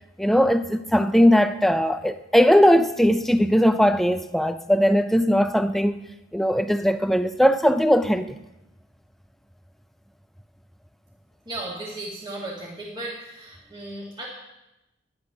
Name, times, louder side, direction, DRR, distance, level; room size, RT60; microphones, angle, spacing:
voice 1, 0.2-6.0 6.3-8.4, equal, ahead, 10 dB, 0.5 m, -19 dB
voice 2, 11.5-14.2, right 2 dB, 25° right, -5 dB, 2.2 m, -35 dB
12.5 x 9.8 x 5.9 m, 0.93 s
head